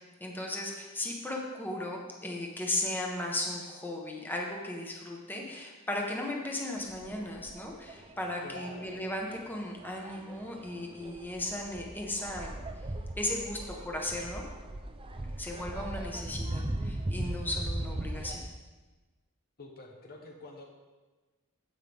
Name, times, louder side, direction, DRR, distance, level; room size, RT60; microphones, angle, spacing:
voice 1, 0.2-12.6 13.2-14.4 15.4-18.5, left 1 dB, 10° left, -1 dB, 1.2 m, -36 dB
sound 1, 6.8-18.4, right 1 dB, 25° right, 0.6 m, -39 dB
voice 2, 8.4-8.9 19.6-20.6, left 2 dB, 45° left, 1 dB, 1.0 m, -47 dB
15.5 x 5.8 x 3.6 m, 1.2 s
head